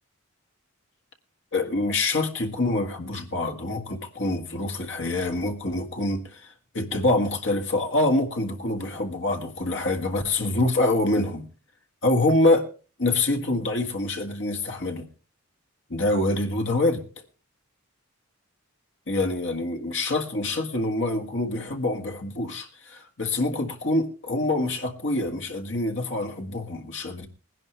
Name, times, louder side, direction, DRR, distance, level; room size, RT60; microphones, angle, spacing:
voice 1, 1.5-11.4 12.0-12.7 13.0-15.1 15.9-17.0 19.1-27.3, left 2 dB, 55° left, 1.7 m, -25 dB
19.5 x 11.0 x 3.3 m
head